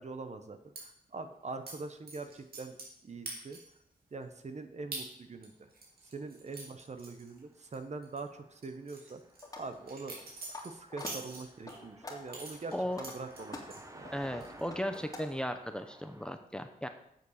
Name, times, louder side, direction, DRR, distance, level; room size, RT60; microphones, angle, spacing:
voice 1, 0.0-2.8 3.0-3.6 4.1-5.7 6.0-9.2 9.6-14.1, right 3 dB, 50° right, 8 dB, 1.1 m, -43 dB
sound 1, 0.8-0.9 1.7-1.8 2.1-3.0 3.3-3.8 4.2-4.3 4.9-5.1 5.4-7.8 8.0-8.2 8.6-11.8 12.3-13.8 14.2-14.7 14.9-15.3, right 3 dB, 85° right, 3.0 m, -45 dB
Car passing by, 6.2-16.3, right 1 dB, 20° right, 1.2 m, -56 dB
sound 2, 9.4-9.7 10.1-10.6 10.9-11.1 11.7-12.4 12.8-15.2, left 2 dB, 20° left, 2.3 m, -45 dB
voice 2, 12.7-13.1 14.1-16.9, equal, 5° left, 8 dB, 0.8 m, -36 dB
8.2 x 7.0 x 6.6 m, 0.74 s
wide cardioid pair, 90°, 15 cm